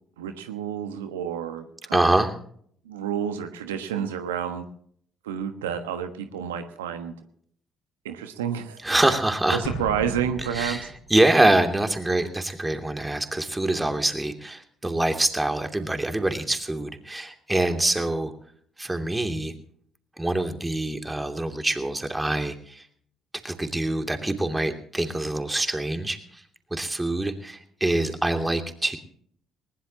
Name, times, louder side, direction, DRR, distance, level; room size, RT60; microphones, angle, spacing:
voice 1, 0.2-2.1 2.8-4.7 5.2-7.1 8.0-9.1 9.5-10.9, right 8 dB, 85° right, 8 dB, 1.2 m, -30 dB
voice 2, 1.9-2.4 8.8-9.6 10.4-18.3 18.8-19.5 20.2-22.9 23.4-26.4 26.7-29.0, right 1 dB, 15° right, 6 dB, 2.8 m, -25 dB
Explosion, 9.6-11.3, left 1 dB, 70° left, 4.9 m, -36 dB
20.5 x 20.0 x 2.9 m, 0.62 s
hypercardioid pair, 50°, 0 cm